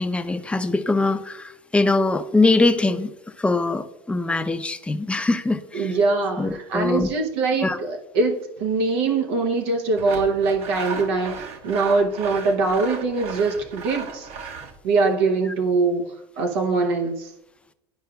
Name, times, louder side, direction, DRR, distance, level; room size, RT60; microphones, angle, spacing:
voice 1, 0.0-3.1 3.4-5.9 6.4-7.1 7.6-7.8, left 2 dB, 10° left, 8 dB, 0.6 m, -22 dB
voice 2, 5.7-14.3 14.8-16.0 16.4-17.3, right 3 dB, 85° right, 3 dB, 0.9 m, -23 dB
Sawing, 10.0-14.8, right 5 dB, 55° right, 1.0 m, -35 dB
11.5 x 4.8 x 2.3 m, 0.83 s
supercardioid pair, 105°, 13 cm